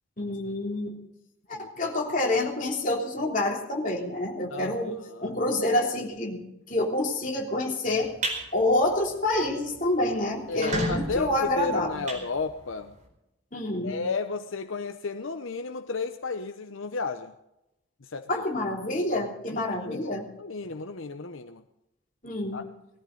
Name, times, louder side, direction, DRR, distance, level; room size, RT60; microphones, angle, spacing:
voice 1, 0.2-1.0 1.5-8.2 8.5-12.1 13.5-14.0 18.3-20.3 22.2-22.6, left 1 dB, 40° left, 3.2 m, -28 dB
sound 1, 7.9-8.4 8.8-9.1 9.4-9.5 9.8-9.9 10.4-12.9, right 1 dB, 35° right, 4.6 m, -32 dB
voice 2, 10.5-12.9 13.8-17.3 18.0-18.5 19.5-20.1 20.4-21.6 22.5-22.7, left 4 dB, 80° left, 0.9 m, -33 dB
20.5 x 14.5 x 4.0 m
head